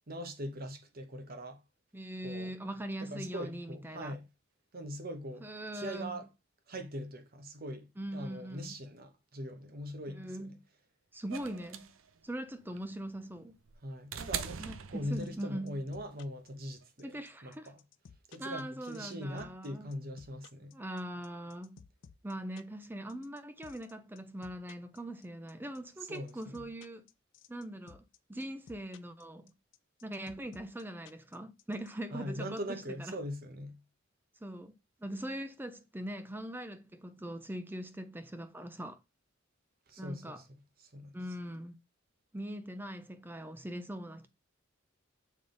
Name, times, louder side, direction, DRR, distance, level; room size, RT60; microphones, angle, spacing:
voice 1, 0.1-1.6 2.2-2.5 3.0-4.3 4.7-6.3 6.7-10.6 13.8-17.8 18.3-20.8 26.1-26.6 32.1-33.8 39.9-40.4 40.8-41.2, equal, 50° right, 1.0 m, -41 dB
voice 2, 1.9-4.2 5.4-6.2 8.0-8.8 10.1-10.6 11.1-11.9 12.2-13.6 14.6-15.8 17.0-17.7 18.4-19.9 20.7-21.8 22.2-27.1 27.5-28.0 28.3-29.5 30.0-33.2 34.4-34.7 35.0-39.0 40.0-40.4 41.1-41.8 42.3-44.3, right 1 dB, 10° right, 0.5 m, -41 dB
sound 1, 11.3-15.6 16.8-16.9, right 8 dB, 85° right, 0.6 m, -42 dB
sound 2, 15.1-31.9, left 6 dB, 65° left, 0.5 m, -56 dB
7.0 x 3.6 x 3.9 m
head